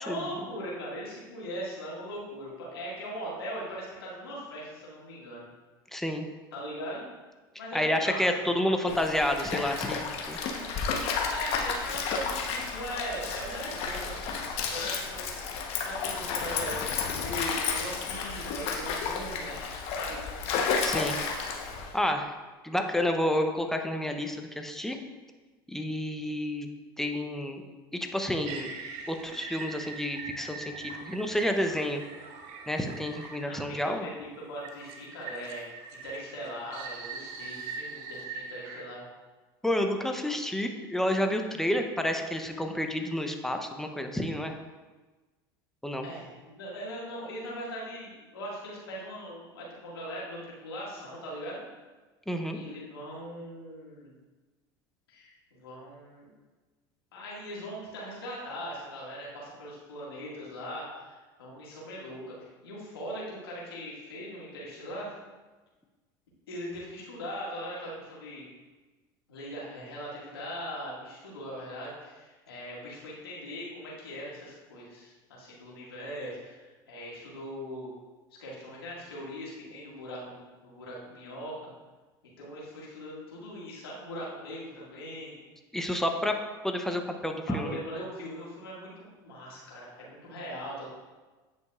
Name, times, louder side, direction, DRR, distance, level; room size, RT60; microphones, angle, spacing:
voice 1, 0.0-5.5 6.5-7.0 7.6-8.2 8.5-9.0 11.2-14.2 14.7-15.4 15.7-19.6 20.0-20.2 33.2-35.7 36.0-39.0 46.0-51.6 52.5-54.1 55.1-56.3 57.1-65.1 66.5-68.5 69.3-77.9 78.4-81.7 82.2-85.4 87.5-90.9, equal, 90° left, -6 dB, 2.0 m, -40 dB
voice 2, 5.9-6.2 7.7-10.4 20.8-21.2 21.9-22.3 22.6-25.0 25.7-26.7 27.0-27.6 27.9-28.7 29.1-32.0 32.7-34.1 39.6-44.5 45.8-46.1 52.3-52.6 85.7-86.4 86.6-87.8, left 1 dB, 5° left, 4 dB, 0.8 m, -30 dB
Stream, 8.9-22.0, left 5 dB, 55° left, 1.0 m, -32 dB
sound 1, 28.4-33.7 34.6-38.8, right 4 dB, 65° right, 0.9 m, -42 dB
9.4 x 5.3 x 2.5 m, 1.3 s
hypercardioid pair, 85°, 12 cm